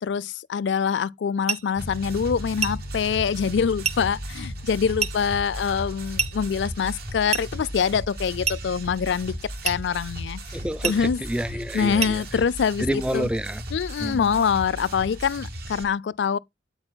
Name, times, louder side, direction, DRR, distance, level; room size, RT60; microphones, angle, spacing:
voice 1, 0.0-9.4 9.6-10.4 10.8-11.2 11.7-13.3 13.7-16.4, left 6 dB, 85° left, 0.4 m, -25 dB
sound 1, 1.5-1.7 2.6-2.9 3.8-4.1 5.0-5.2 6.2-6.4 7.3-7.6 8.4-8.7 9.6-9.9 10.8-11.1 12.0-12.2, right 6 dB, 40° right, 0.8 m, -28 dB
Piano, 1.8-14.0, equal, 60° left, 0.7 m, -40 dB
sound 2, 1.8-15.8, equal, 60° right, 2.5 m, -37 dB
voice 2, 10.5-12.2 12.8-13.6 14.0-14.4, equal, 5° right, 0.5 m, -28 dB
8.8 x 8.6 x 2.2 m
head